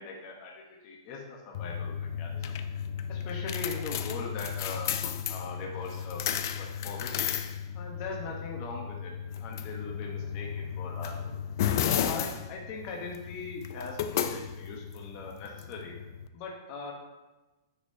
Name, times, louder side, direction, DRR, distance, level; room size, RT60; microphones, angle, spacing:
voice 1, 0.0-2.5 3.1-4.9 5.3-6.2 6.6-7.3 7.7-9.1 9.4-11.4 11.8-15.9 16.3-16.9, left 4 dB, 35° left, 0 dB, 1.0 m, -40 dB
sound 1, 1.5-16.3, left 8 dB, 50° left, 0.4 m, -34 dB
9.5 x 5.4 x 2.7 m, 1.1 s
hypercardioid pair, 165°, 2 cm